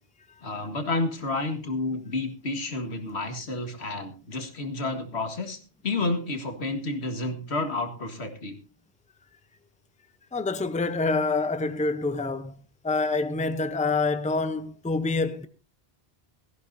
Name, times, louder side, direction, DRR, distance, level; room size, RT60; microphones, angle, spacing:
voice 1, 0.4-8.6, left 2 dB, 85° left, 2.0 m, -30 dB
voice 2, 10.3-12.5 12.8-15.5, left 3 dB, 10° left, 0.7 m, -26 dB
17.5 x 14.0 x 2.7 m
omnidirectional pair, 1.1 m